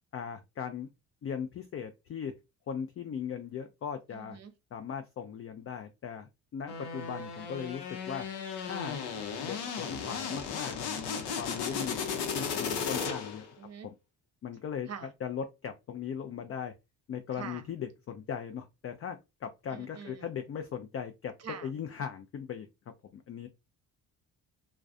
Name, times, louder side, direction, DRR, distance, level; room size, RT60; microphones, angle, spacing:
voice 1, 0.1-0.9 1.2-2.3 2.7-4.4 4.7-8.3 8.6-9.0 9.4-12.0 12.3-13.4 13.8-13.9 14.4-14.9 15.2-16.7 17.1-21.3 21.6-22.7 23.1-23.5, left 7 dB, 35° left, 0.4 m, -38 dB
voice 2, 4.1-4.5 13.6-13.9 14.9-15.1 17.3-17.7 19.7-20.3 21.4-21.7, right 7 dB, 40° right, 0.8 m, -44 dB
sound 1, 6.7-13.5, left 6 dB, 75° left, 0.7 m, -35 dB
2.3 x 2.2 x 2.4 m
supercardioid pair, 55°, 41 cm